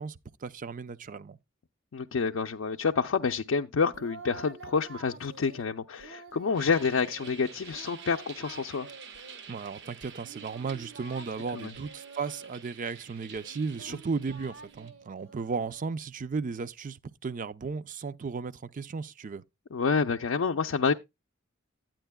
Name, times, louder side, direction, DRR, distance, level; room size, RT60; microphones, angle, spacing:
voice 1, 0.0-1.4 9.5-19.4, right 5 dB, 40° right, 0.4 m, -35 dB
voice 2, 1.9-8.9 11.5-11.7 19.7-20.9, left 5 dB, 70° left, 0.5 m, -28 dB
Singing, 3.8-5.7 6.0-7.3 7.7-9.4 9.8-12.7 13.2-15.9, right 3 dB, 80° right, 1.4 m, -49 dB
sound 1, 6.5-14.9, right 6 dB, 60° right, 0.8 m, -49 dB
12.0 x 9.0 x 2.2 m
head